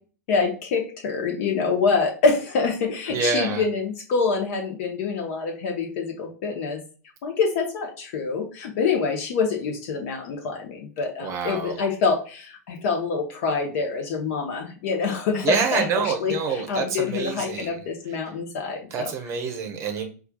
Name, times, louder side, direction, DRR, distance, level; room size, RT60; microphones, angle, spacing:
voice 1, 0.3-6.8 7.2-19.1, left 4 dB, 50° left, 2 dB, 0.8 m, -26 dB
voice 2, 3.1-3.6 11.2-11.8 15.4-17.8 18.9-20.0, right 5 dB, 30° right, 5 dB, 0.8 m, -27 dB
4.4 x 2.4 x 2.3 m, 0.37 s
figure-of-eight pair, 95°, 9 cm